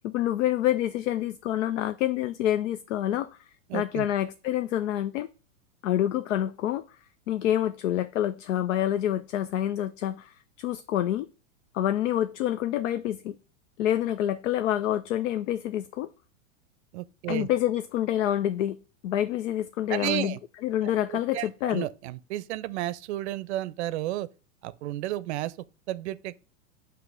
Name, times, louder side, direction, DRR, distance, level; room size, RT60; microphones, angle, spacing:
voice 1, 0.0-3.4 3.7-5.3 5.8-6.8 7.3-11.3 11.7-13.4 13.8-16.1 17.3-18.8 19.0-20.4 20.6-21.9, left 12 dB, 65° left, 0.6 m, -27 dB
voice 2, 3.7-4.1 16.9-17.5 19.9-20.4 21.1-24.3 24.6-25.5 25.9-26.4, right 15 dB, 55° right, 0.6 m, -32 dB
7.2 x 3.0 x 6.0 m
hypercardioid pair, 130°, 40 cm